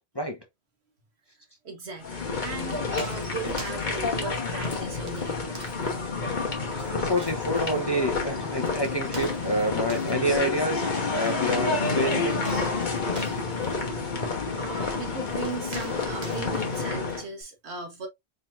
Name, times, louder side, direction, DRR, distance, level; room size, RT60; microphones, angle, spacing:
voice 1, 1.6-5.6 14.5-18.1, right 4 dB, 75° right, 1.5 m, -37 dB
sound 1, 2.0-17.2, left 4 dB, 45° left, 1.3 m, -29 dB
sound 2, 2.7-11.3 12.3-16.9, right 3 dB, 40° right, 1.3 m, -47 dB
voice 2, 6.8-10.9 11.1-12.7, equal, 25° left, 0.7 m, -28 dB
4.4 x 3.9 x 2.5 m
omnidirectional pair, 1.1 m